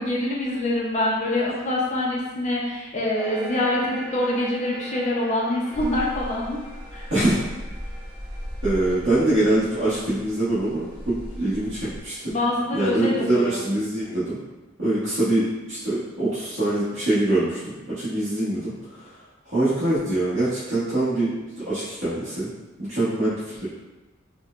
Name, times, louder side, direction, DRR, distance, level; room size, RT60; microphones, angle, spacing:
voice 1, 0.0-6.6 6.9-7.1 12.3-13.6, left 1 dB, 35° left, -3 dB, 0.5 m, -25 dB
sound 1, 3.1-12.2, right 1 dB, 15° right, 0.5 m, -43 dB
sound 2, 5.7-12.0, equal, 10° left, 0.8 m, -37 dB
voice 2, 8.6-12.3 12.7-14.4 14.8-19.2 19.4-21.3 21.6-22.5 22.8-23.6, right 1 dB, 60° right, -13 dB, 1.1 m, -24 dB
4.2 x 2.1 x 2.4 m, 1.1 s
head